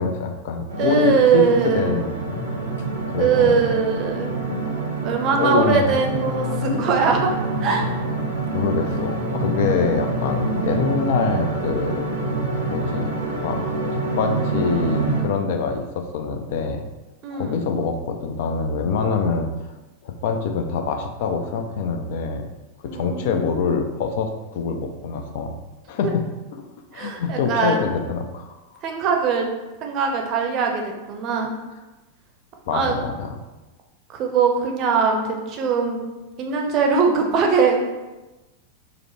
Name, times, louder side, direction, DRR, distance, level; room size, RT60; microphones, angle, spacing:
voice 1, 0.0-1.5 1.7-2.5 3.1-3.5 5.4-5.9 8.5-12.0 12.7-13.6 13.9-16.8 17.3-19.5 20.0-22.5 22.8-25.6 25.9-26.2 26.5-28.6 32.7-33.3, left 5 dB, 50° left, 5 dB, 0.4 m, -25 dB
sound 1, 0.7-15.2, right 2 dB, 85° right, 0.7 m, -26 dB
voice 2, 0.8-2.0 3.2-4.3 5.0-7.3 7.6-7.8 17.2-17.6 22.9-23.8 26.0-26.1 26.9-27.9 28.8-29.5 29.8-31.5 32.7-33.0 34.1-36.0 36.4-37.9, right 5 dB, 35° right, 2 dB, 0.6 m, -21 dB
4.8 x 2.1 x 3.0 m, 1.1 s
figure-of-eight pair, 90°, 0 cm